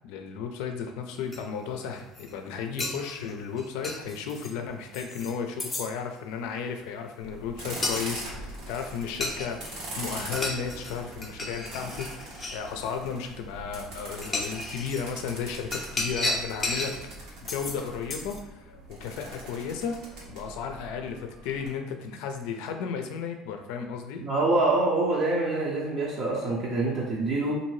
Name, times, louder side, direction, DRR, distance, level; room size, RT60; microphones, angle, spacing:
voice 1, 0.0-16.9 17.4-20.0 20.3-24.2, left 6 dB, 80° left, 5 dB, 0.4 m, -34 dB
sound 1, 1.3-1.4 2.0-2.3 2.8-4.5 4.9-5.3 5.6-5.9 7.8-8.1 9.2-9.8 10.0-10.9 11.2-12.6 13.5-13.6 14.2-15.0 15.7-16.9 17.5-17.8 18.1-18.4, left 2 dB, 20° left, 0.5 m, -33 dB
sound 2, 7.2-21.7, right 1 dB, 80° right, 1.2 m, -42 dB
voice 2, 24.2-27.6, right 2 dB, 45° right, -4 dB, 0.6 m, -25 dB
2.7 x 2.6 x 3.1 m, 0.95 s
cardioid pair, 115°, 0 cm